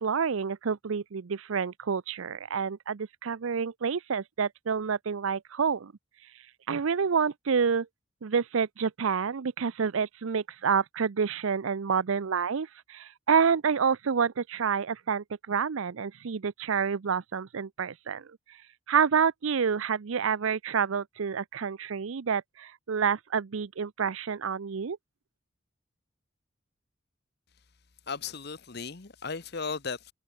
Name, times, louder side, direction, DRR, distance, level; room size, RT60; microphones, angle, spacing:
voice 1, 0.0-5.9 6.7-7.9 8.2-18.3 18.9-25.0, right 6 dB, 80° right, 0.5 m, -28 dB
voice 2, 28.1-30.1, left 5 dB, 50° left, 1.0 m, -36 dB
head